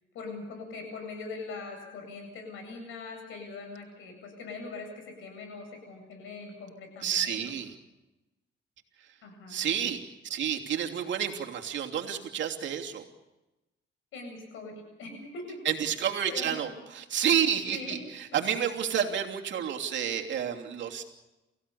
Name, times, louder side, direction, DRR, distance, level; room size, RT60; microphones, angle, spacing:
voice 1, 0.1-7.5 9.2-9.6 14.1-15.6 16.3-16.6 17.3-17.4 17.7-18.0 18.3-18.4, left 3 dB, 85° left, 5 dB, 7.9 m, -42 dB
voice 2, 7.0-7.7 9.5-13.0 15.6-21.0, right 8 dB, 70° right, 2 dB, 3.0 m, -30 dB
28.5 x 16.0 x 7.0 m, 1.0 s
cardioid pair, 90°, 20 cm